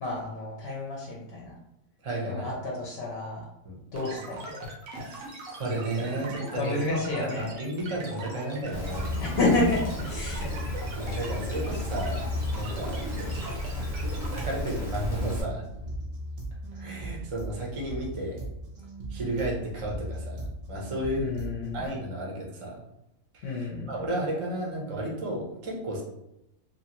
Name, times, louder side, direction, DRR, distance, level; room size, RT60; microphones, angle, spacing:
voice 1, 0.0-1.6 2.2-3.5 3.9-4.5 6.5-7.5 9.2-10.8 21.2-21.8 23.4-24.1, left 2 dB, 55° left, -4 dB, 0.8 m, -30 dB
voice 2, 2.0-2.5 3.6-3.8 4.9-6.8 7.2-9.2 10.9-13.0 14.3-15.6 16.7-18.5 19.1-20.4 20.7-21.3 21.7-22.8 23.3-26.0, right 1 dB, 30° right, -2 dB, 0.6 m, -33 dB
sound 1, 3.9-14.4, right 2 dB, 75° right, 1.1 m, -40 dB
Rain, 8.7-15.4, left 1 dB, 15° left, 0.8 m, -33 dB
sound 2, 13.9-21.9, right 2 dB, 55° right, 0.9 m, -39 dB
2.9 x 2.5 x 2.9 m, 0.83 s
omnidirectional pair, 1.4 m